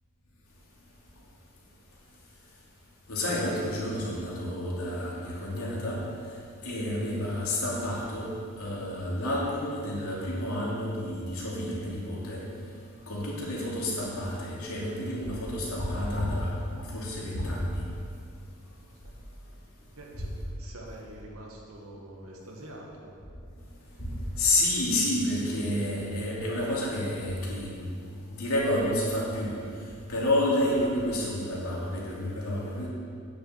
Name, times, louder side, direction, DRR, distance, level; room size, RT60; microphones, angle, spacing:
voice 1, 3.1-6.0 6.6-8.3 8.6-12.4 13.1-17.8 24.0-27.9 28.3-29.5 30.1-32.9, left 1 dB, 80° left, -5 dB, 2.8 m, -29 dB
voice 2, 19.9-23.1, right 1 dB, 80° right, -1 dB, 2.0 m, -45 dB
9.3 x 6.9 x 7.6 m, 2.4 s
head